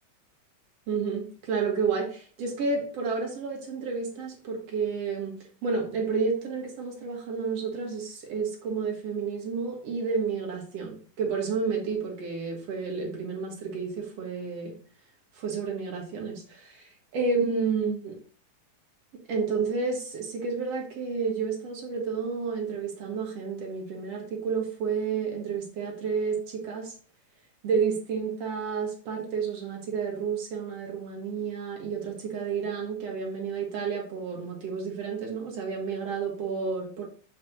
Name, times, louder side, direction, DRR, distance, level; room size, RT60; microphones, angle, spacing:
voice 1, 0.9-14.7 15.3-18.2 19.3-26.9 27.6-37.0, right 5 dB, 55° right, -1 dB, 2.6 m, -30 dB
7.5 x 5.4 x 2.9 m, 0.43 s
omnidirectional pair, 3.8 m